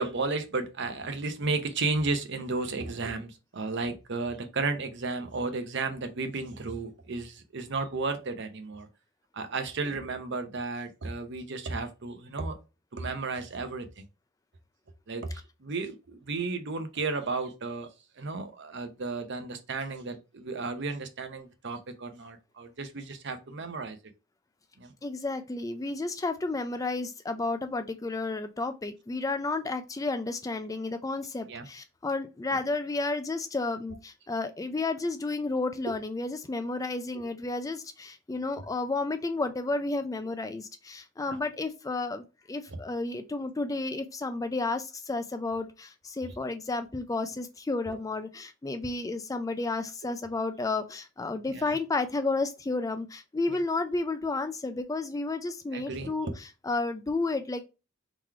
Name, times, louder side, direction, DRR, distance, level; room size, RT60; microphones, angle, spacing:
voice 1, 0.0-8.9 9.3-12.5 12.9-14.0 15.1-15.3 15.6-17.9 18.2-24.0 24.8-24.9 31.5-31.7 41.3-41.4 42.7-42.8 47.9-48.0 51.5-51.7 53.5-53.6 55.7-56.3, right 3 dB, 55° right, 0.8 m, -33 dB
voice 2, 25.0-57.7, left 3 dB, 15° left, 0.3 m, -32 dB
3.8 x 3.1 x 4.6 m
head